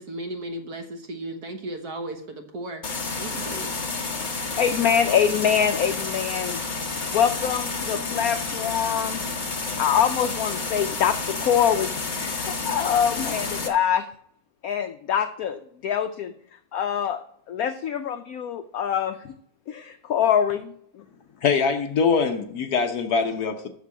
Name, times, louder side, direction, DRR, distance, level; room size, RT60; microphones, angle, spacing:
voice 1, 0.0-2.8 3.2-3.7, right 1 dB, 55° right, 5 dB, 1.5 m, -35 dB
sound 1, 2.8-13.7, left 3 dB, 30° left, 0.9 m, -30 dB
voice 2, 4.2-6.6 7.1-9.3 9.8-14.1 14.6-16.3 16.7-19.4 19.7-21.0, left 8 dB, 80° left, 8 dB, 0.8 m, -25 dB
voice 3, 21.4-23.7, left 5 dB, 60° left, 6 dB, 1.2 m, -23 dB
7.4 x 6.7 x 7.4 m, 0.66 s
omnidirectional pair, 2.2 m